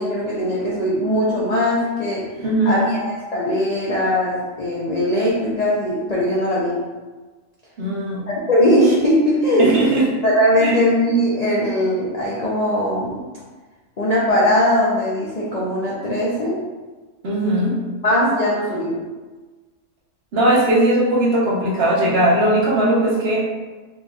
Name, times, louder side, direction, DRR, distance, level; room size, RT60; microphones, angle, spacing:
voice 1, 0.0-2.2 2.7-6.8 8.3-9.8 10.2-13.2 14.0-16.6 18.0-19.0, equal, 75° left, -6 dB, 0.3 m, -20 dB
voice 2, 2.4-2.9 7.8-8.3 9.6-10.2 10.6-10.8 17.2-17.8 20.3-23.5, right 1 dB, 50° right, -6 dB, 0.9 m, -18 dB
3.9 x 2.6 x 2.3 m, 1.3 s
omnidirectional pair, 1.5 m